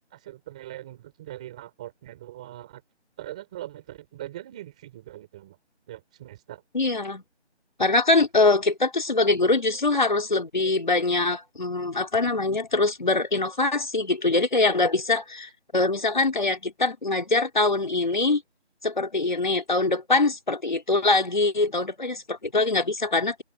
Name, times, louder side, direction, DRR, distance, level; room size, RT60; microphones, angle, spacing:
voice 1, 0.1-2.8 3.2-5.6 5.9-6.6, right 14 dB, 5° right, 4.9 m, -41 dB
voice 2, 6.7-7.2 7.8-18.4 18.8-23.4, left 3 dB, 40° left, 3.9 m, -23 dB
figure-of-eight pair, 180°, 34 cm